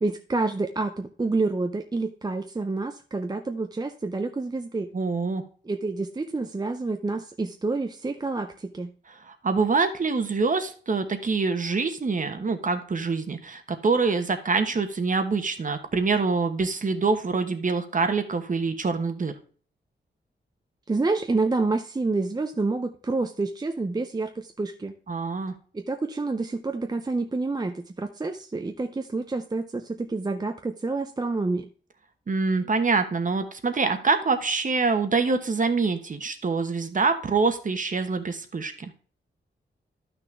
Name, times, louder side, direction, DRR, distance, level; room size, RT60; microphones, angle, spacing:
voice 1, 0.0-4.9 5.7-8.9 20.9-24.9 25.7-31.7, right 3 dB, 20° right, 6 dB, 0.5 m, -28 dB
voice 2, 4.9-5.4 9.3-19.3 25.1-25.5 32.3-38.9, right 4 dB, 40° right, 8 dB, 1.1 m, -25 dB
12.5 x 6.1 x 3.3 m, 0.42 s
wide cardioid pair, 170°, 20 cm